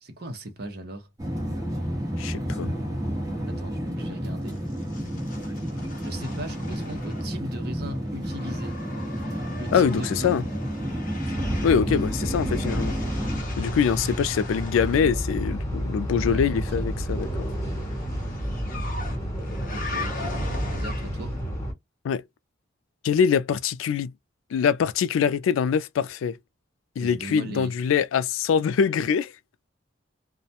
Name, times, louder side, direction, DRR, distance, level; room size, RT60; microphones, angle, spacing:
voice 1, 0.0-1.1 3.5-4.6 6.0-8.8 9.5-10.3 16.2-16.9 19.7-21.3 27.0-27.7, right 1 dB, 50° right, 0.7 m, -38 dB
sound 1, 1.2-13.4, equal, 20° right, 0.9 m, -31 dB
voice 2, 2.2-2.7 9.7-10.4 11.6-13.0 13.6-17.3 22.0-22.2 23.0-24.1 24.5-26.4 27.0-29.3, left 7 dB, 85° left, 0.3 m, -24 dB
sound 2, 4.5-7.5 7.8-15.1 16.7-21.4, left 3 dB, 40° left, 0.6 m, -41 dB
sound 3, 11.3-21.7, equal, 15° left, 0.8 m, -30 dB
2.4 x 2.1 x 2.8 m
head